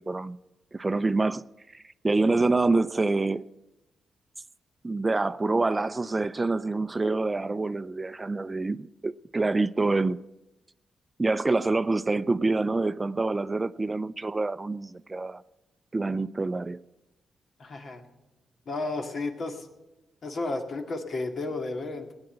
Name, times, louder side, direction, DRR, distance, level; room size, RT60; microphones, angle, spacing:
voice 1, 0.1-0.4 0.7-1.4 1.7-3.5 4.8-10.2 11.2-15.4 15.9-16.8, right 3 dB, 25° right, 0.4 m, -26 dB
voice 2, 17.6-18.1 18.7-19.7 20.2-22.1, left 2 dB, 60° left, 2.0 m, -32 dB
16.5 x 9.8 x 7.9 m
cardioid pair, 70°, 0 cm